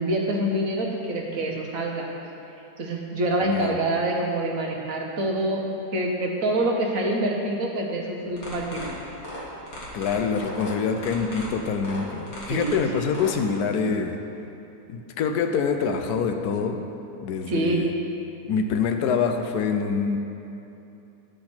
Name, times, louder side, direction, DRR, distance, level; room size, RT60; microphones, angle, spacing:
voice 1, 0.0-2.1 2.8-9.0 12.5-13.1 17.5-17.8, right 1 dB, 60° right, 0 dB, 1.3 m, -26 dB
voice 2, 3.4-3.8 9.9-14.2 14.9-16.9 17.2-18.0 18.5-20.2, left 6 dB, 80° left, 6 dB, 1.1 m, -25 dB
sound 1, 8.3-13.3, equal, 65° left, 2.2 m, -37 dB
10.5 x 5.8 x 4.3 m, 2.9 s
omnidirectional pair, 1.7 m